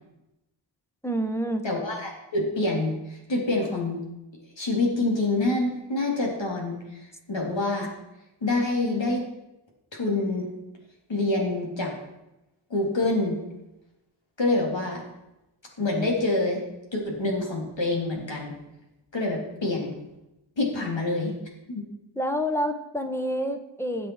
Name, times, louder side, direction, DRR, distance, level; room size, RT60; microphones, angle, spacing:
voice 1, 1.0-1.6 22.2-24.1, equal, 5° left, 6 dB, 1.4 m, -28 dB
voice 2, 1.6-4.0 4.6-6.7 7.3-7.9 8.4-9.2 9.9-10.5 11.1-11.9 12.7-13.4 14.4-15.0 15.8-16.6 16.9-18.5 19.1-19.9 20.6-21.3 21.7-21.8, left 2 dB, 70° left, -1 dB, 3.4 m, -26 dB
19.5 x 7.7 x 4.8 m, 0.93 s
wide cardioid pair, 65°, 47 cm